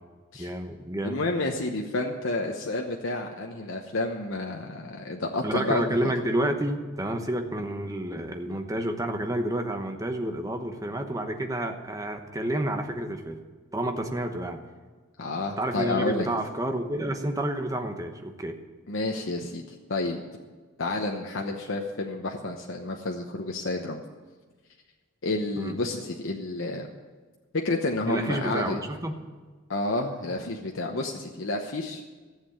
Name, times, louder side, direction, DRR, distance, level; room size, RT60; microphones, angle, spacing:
voice 1, 0.4-1.2 5.4-13.4 13.7-14.6 15.6-18.6 25.6-25.7 28.1-29.2, right 1 dB, 15° right, 5 dB, 1.1 m, -30 dB
voice 2, 1.0-6.1 15.2-16.3 18.9-19.6 19.9-20.2 20.8-24.0 25.2-26.9 27.5-28.8 29.7-32.0, left 2 dB, 75° left, 2 dB, 1.0 m, -30 dB
14.5 x 7.6 x 8.7 m, 1.4 s
head